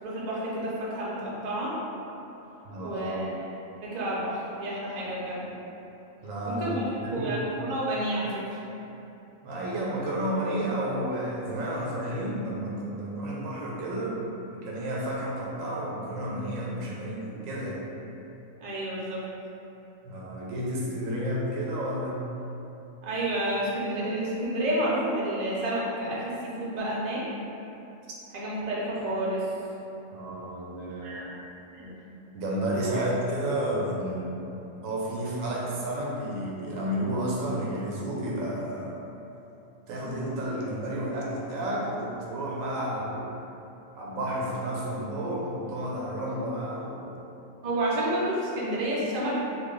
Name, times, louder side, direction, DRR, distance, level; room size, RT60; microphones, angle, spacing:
voice 1, 0.0-1.7 2.8-3.5 3.8-5.4 6.5-8.6 18.6-19.2 23.0-27.2 28.3-29.5 31.0-31.3 31.7-32.0 47.6-49.4, right 1 dB, 45° right, -7 dB, 0.6 m, -30 dB
voice 2, 2.6-3.2 6.2-7.5 9.4-14.2 14.5-17.8 20.0-22.3 30.1-31.4 32.3-34.5 34.8-38.9 39.9-43.3 43.9-47.1, right 1 dB, 85° right, -4 dB, 1.0 m, -31 dB
2.7 x 2.2 x 3.7 m, 2.9 s
omnidirectional pair, 1.4 m